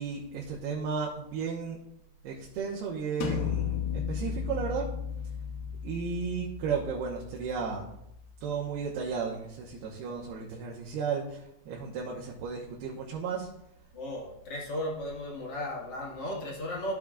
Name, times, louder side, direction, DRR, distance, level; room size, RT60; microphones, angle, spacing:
voice 1, 0.0-1.8 2.2-4.9 5.8-7.9 8.4-11.4 11.7-13.5, right 5 dB, 85° right, -3 dB, 3.1 m, -34 dB
sound 1, 3.2-8.8, left 7 dB, 80° left, 2.9 m, -35 dB
voice 2, 13.9-16.9, left 1 dB, 45° left, -3 dB, 2.2 m, -35 dB
14.5 x 7.0 x 2.5 m, 0.78 s
omnidirectional pair, 4.4 m